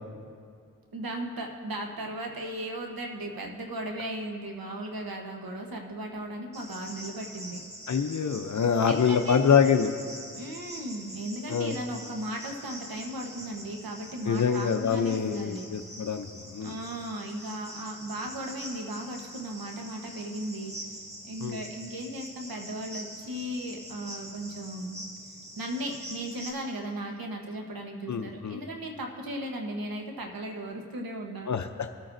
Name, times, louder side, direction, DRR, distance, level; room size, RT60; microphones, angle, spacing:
voice 1, 0.9-7.6 8.9-9.4 10.3-15.7 16.6-20.8 21.2-25.0 25.6-31.5, right 1 dB, 85° right, 2 dB, 1.1 m, -36 dB
Cricket, 6.5-26.5, right 1 dB, 20° right, 2.0 m, -44 dB
voice 2, 7.9-9.9 11.5-11.7 14.3-16.7 21.4-21.6 28.1-28.6 31.5-31.7, left 7 dB, 55° left, 7 dB, 0.6 m, -25 dB
20.0 x 9.1 x 2.6 m, 2.2 s
cardioid pair, 45°, 34 cm